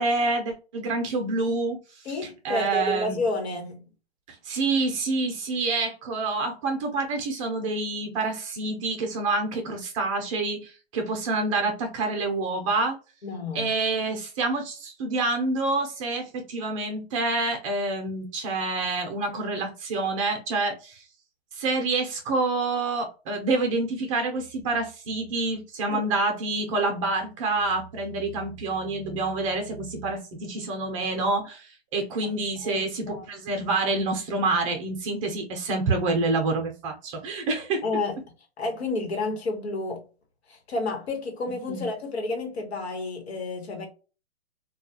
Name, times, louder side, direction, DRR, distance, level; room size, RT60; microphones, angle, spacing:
voice 1, 0.0-2.1 2.4-3.2 4.3-13.0 13.5-21.0 21.5-37.8 41.7-41.8, right 3 dB, 30° right, 0.6 m, -27 dB
voice 2, 2.0-3.9 13.2-13.7 25.9-26.0 32.6-33.2 37.8-38.2 38.6-40.0 40.5-43.9, left 2 dB, 80° left, 1.1 m, -30 dB
2.3 x 2.3 x 2.7 m
hypercardioid pair, 140°, 32 cm